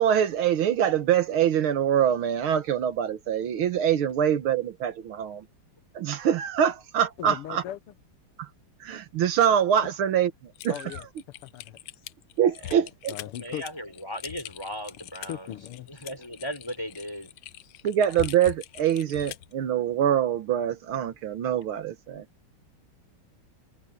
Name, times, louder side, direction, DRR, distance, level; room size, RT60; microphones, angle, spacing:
voice 1, 0.0-5.5 5.9-7.6 8.4-8.5 8.8-11.0 12.4-13.1 17.8-22.3, right 9 dB, 75° right, 1.9 m, -24 dB
voice 2, 7.2-7.8 10.7-11.1 11.4-11.8 13.1-13.6 15.3-15.9, left 12 dB, 85° left, 1.8 m, -37 dB
Typing, 10.6-19.5, left 15 dB, 70° left, 1.2 m, -42 dB
voice 3, 13.4-15.5 15.9-17.3, equal, 10° left, 4.5 m, -37 dB
omnidirectional pair, 2.4 m